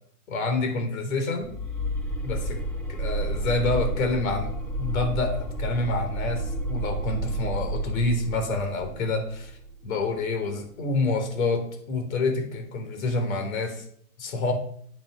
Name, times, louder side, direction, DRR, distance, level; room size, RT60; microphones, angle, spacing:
voice 1, 0.3-1.5 2.2-2.6 2.9-9.5 9.8-13.8 14.2-14.5, left 3 dB, 65° left, 5 dB, 3.8 m, -27 dB
sound 1, 1.4-10.3, right 1 dB, 5° left, 2.0 m, -31 dB
9.9 x 7.0 x 5.8 m, 0.62 s
hypercardioid pair, 155°, 44 cm